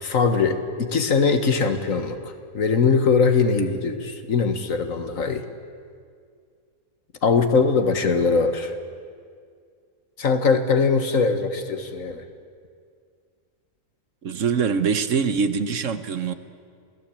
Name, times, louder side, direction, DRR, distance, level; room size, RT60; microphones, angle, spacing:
voice 1, 0.0-2.2 2.5-5.5 7.2-8.8 10.2-12.2, left 5 dB, 65° left, 8 dB, 1.9 m, -21 dB
voice 2, 14.2-16.3, right 6 dB, 60° right, 11 dB, 1.3 m, -23 dB
27.5 x 17.5 x 8.7 m, 2.2 s
omnidirectional pair, 1.5 m